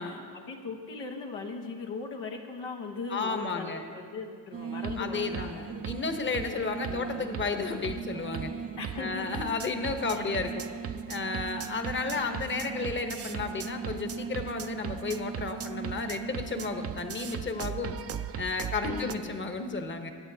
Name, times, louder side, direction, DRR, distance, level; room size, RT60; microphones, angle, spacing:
voice 1, 0.0-5.9 6.8-7.3 8.8-9.4 10.1-10.7 18.8-19.3, left 4 dB, 85° left, 1 dB, 1.3 m, -39 dB
voice 2, 3.1-3.8 5.0-8.5 9.0-10.7 11.1-18.0 18.4-20.1, left 4 dB, 25° left, 6 dB, 1.0 m, -33 dB
sound 1, 4.5-19.2, right 7 dB, 35° right, 0.5 m, -37 dB
22.5 x 8.6 x 2.8 m, 2.1 s
cardioid pair, 70°, 42 cm